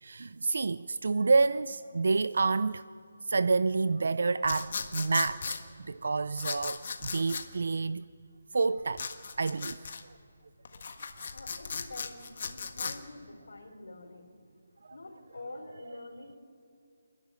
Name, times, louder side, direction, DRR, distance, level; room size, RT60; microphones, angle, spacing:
voice 1, 0.0-2.8 3.2-8.0 8.5-9.1 9.4-9.8 15.9-16.0, right 4 dB, 60° right, 0.5 m, -28 dB
sound 1, 4.4-5.6 6.4-7.5 8.9-10.0 10.7-13.0, left 5 dB, 40° left, 1.5 m, -37 dB
voice 2, 11.3-14.3 14.9-16.4, left 2 dB, 80° left, 3.7 m, -46 dB
28.5 x 11.5 x 9.6 m
hypercardioid pair, 175°, 0 cm